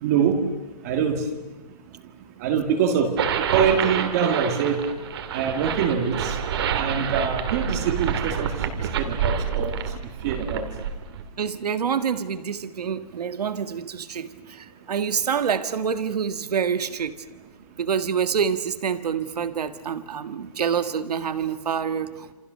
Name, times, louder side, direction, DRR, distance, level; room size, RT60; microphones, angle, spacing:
voice 1, 0.0-0.4 0.8-1.3 2.4-3.1 3.5-4.8 5.3-6.3 6.8-8.5 9.0-9.7 10.2-10.7, right 7 dB, 25° right, 4 dB, 1.8 m, -24 dB
sound 1, 3.2-11.2, right 7 dB, 40° right, 2.2 m, -27 dB
voice 2, 11.4-17.1 17.8-22.3, right 7 dB, 75° right, 10 dB, 1.8 m, -27 dB
29.5 x 28.0 x 6.7 m, 1.1 s
hypercardioid pair, 180°, 20 cm